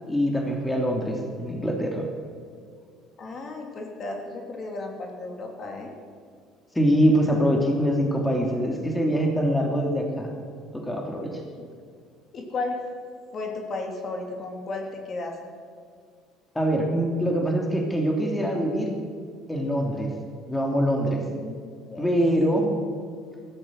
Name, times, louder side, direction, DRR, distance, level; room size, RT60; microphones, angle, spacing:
voice 1, 0.1-2.0 6.7-10.3 10.7-11.4 16.5-18.9 19.5-20.1 20.5-21.2 22.0-22.7, equal, 10° left, 1 dB, 3.1 m, -24 dB
voice 2, 3.2-5.9 11.6-11.7 12.3-12.8 13.3-15.4 21.3-21.6 21.9-22.2, left 3 dB, 45° left, 2 dB, 3.3 m, -34 dB
16.5 x 13.0 x 6.5 m, 2.2 s
supercardioid pair, 85°, 0 cm